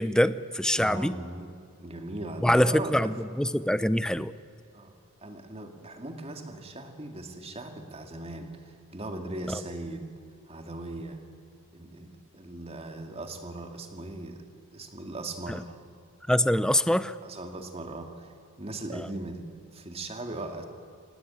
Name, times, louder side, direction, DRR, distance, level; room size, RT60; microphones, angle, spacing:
voice 1, 0.0-1.1 2.4-4.3 9.5-9.6 15.5-15.6 16.3-17.2 18.9-19.1, equal, 5° left, 15 dB, 0.5 m, -24 dB
voice 2, 0.8-1.5 1.8-3.1 4.7-4.9 5.2-10.1 10.5-11.2 11.7-14.5 14.7-15.7 17.2-19.5 19.7-20.6, right 2 dB, 25° right, 5 dB, 2.2 m, -39 dB
26.5 x 18.0 x 9.0 m, 2.5 s
head